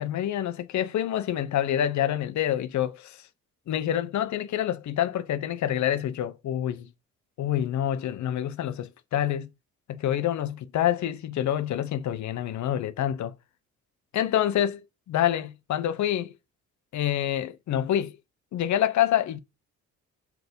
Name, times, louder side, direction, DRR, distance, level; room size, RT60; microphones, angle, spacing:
voice 1, 0.0-3.3 3.7-6.9 7.4-9.5 9.9-13.3 14.1-16.3 16.9-18.2 18.5-19.4, left 11 dB, 70° left, 1.0 m, -27 dB
7.7 x 4.9 x 6.9 m
cardioid pair, 90°, 30 cm